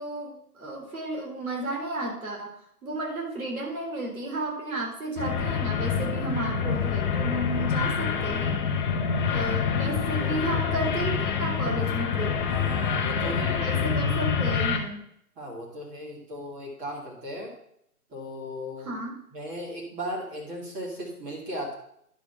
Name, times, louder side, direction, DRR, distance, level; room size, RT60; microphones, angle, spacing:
voice 1, 0.0-8.6 9.3-12.4 13.2-15.1 18.8-19.2, right 2 dB, 60° right, -1 dB, 3.7 m, -33 dB
sound 1, 5.2-14.8, left 6 dB, 30° left, 1.0 m, -26 dB
voice 2, 10.2-10.6 12.5-13.8 15.4-17.5 18.1-18.9 19.3-21.8, equal, 15° right, -2 dB, 2.4 m, -37 dB
10.5 x 5.2 x 5.7 m, 0.72 s
figure-of-eight pair, 135°, 47 cm